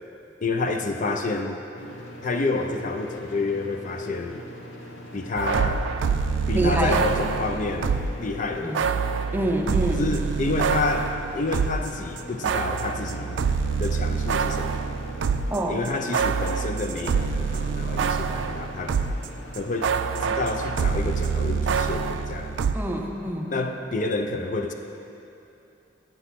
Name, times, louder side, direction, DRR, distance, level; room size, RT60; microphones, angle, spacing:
voice 1, 0.4-1.6 2.2-4.5 5.1-5.9 6.5-9.0 10.0-13.4 13.8-15.0 15.7-19.0 19.5-19.9 20.2-22.6 23.5-24.7, left 3 dB, 45° left, 4 dB, 0.5 m, -29 dB
sound 1, 1.7-21.5, equal, 85° left, 1.1 m, -41 dB
sound 2, 5.4-8.2 8.7-11.9 12.2-19.3 19.5-22.7, right 6 dB, 80° right, 0.3 m, -26 dB
voice 2, 6.5-7.0 8.6-8.8 9.3-10.0 15.5-15.8 22.7-23.6, right 1 dB, 10° right, 1 dB, 0.6 m, -26 dB
9.1 x 7.9 x 4.1 m, 2.8 s
head